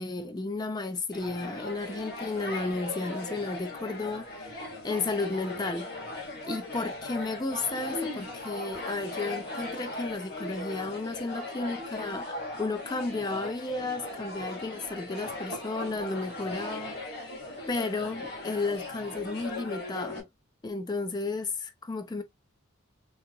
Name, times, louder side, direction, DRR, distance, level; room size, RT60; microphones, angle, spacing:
voice 1, 0.0-5.9 6.4-12.3 12.6-17.2 17.7-20.3 20.6-22.2, left 3 dB, 20° left, 0.3 m, -33 dB
sound 1, 1.1-20.2, left 2 dB, 45° left, 1.5 m, -38 dB
3.9 x 2.7 x 2.5 m
head